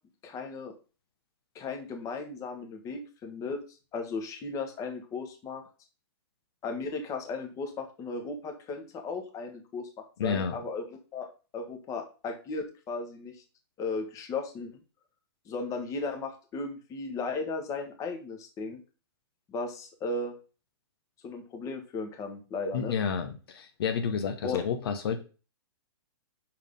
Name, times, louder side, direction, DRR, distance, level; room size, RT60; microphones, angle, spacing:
voice 1, 0.2-0.7 1.5-3.6 3.9-5.6 6.6-10.8 11.1-11.3 11.5-13.4 13.8-14.7 15.5-18.8 19.5-20.3 21.2-22.9 24.4-24.6, left 3 dB, 25° left, 5 dB, 1.4 m, -36 dB
voice 2, 10.2-10.6 22.7-25.2, left 6 dB, 65° left, 7 dB, 1.2 m, -30 dB
5.7 x 4.6 x 5.3 m, 0.34 s
hypercardioid pair, 135°, 13 cm